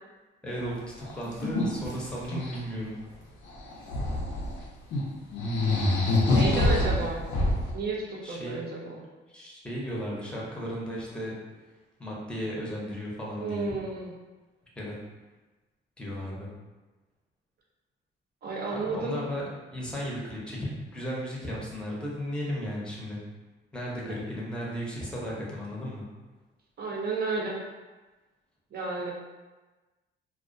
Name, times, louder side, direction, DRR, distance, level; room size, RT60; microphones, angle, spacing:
voice 1, 0.4-2.9 8.2-8.6 9.3-11.3 12.0-13.7 14.8-14.9 16.0-16.5 18.7-23.2 23.7-26.0, equal, 5° left, -4 dB, 0.6 m, -35 dB
sound 1, 0.6-0.7 1.0-2.6 3.5-4.6 4.9-5.0 5.3-7.7, left 2 dB, 70° left, 0.6 m, -26 dB
voice 2, 6.3-7.3 7.7-9.0 13.4-14.1 18.4-19.2 24.1-24.2 26.8-27.6 28.7-29.1, right 3 dB, 50° right, -2 dB, 0.6 m, -32 dB
2.3 x 2.1 x 2.5 m, 1.2 s
cardioid pair, 90°, 20 cm